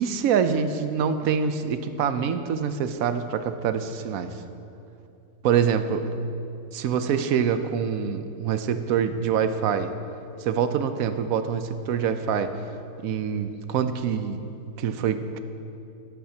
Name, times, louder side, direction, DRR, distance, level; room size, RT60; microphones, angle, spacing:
voice 1, 0.0-4.3 5.4-6.1 6.7-9.9 10.4-12.5 13.0-14.4 14.8-15.4, right 7 dB, 70° right, 10 dB, 1.0 m, -25 dB
14.0 x 11.5 x 2.8 m, 2.7 s
omnidirectional pair, 1.7 m